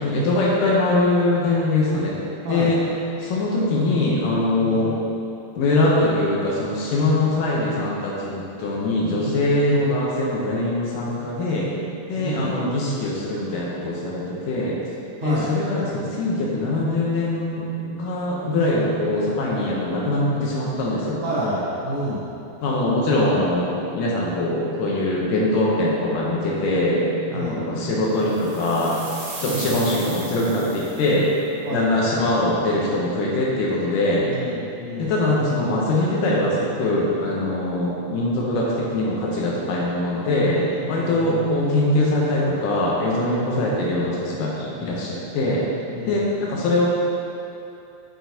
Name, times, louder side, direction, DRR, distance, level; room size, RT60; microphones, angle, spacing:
voice 1, 0.0-2.2 2.5-2.8 3.2-5.0 5.6-11.7 12.1-14.8 15.2-21.2 22.6-29.0 29.4-31.3 31.7-34.3 35.0-40.6 40.9-45.7 46.1-46.9, left 2 dB, 75° left, -4 dB, 2.0 m, -22 dB
voice 2, 9.1-9.4 9.7-9.8 12.2-12.5 15.2-15.5 20.3-20.5 21.2-22.3 27.3-27.7 29.4-29.7 31.6-32.5 34.2-35.1 40.5-41.4 43.4-43.7 44.8-45.1 45.9-46.3, equal, 80° right, -9 dB, 1.6 m, -30 dB
sound 1, 28.3-31.3, right 2 dB, 60° right, 1.7 m, -37 dB
6.7 x 5.9 x 2.7 m, 2.7 s
omnidirectional pair, 4.4 m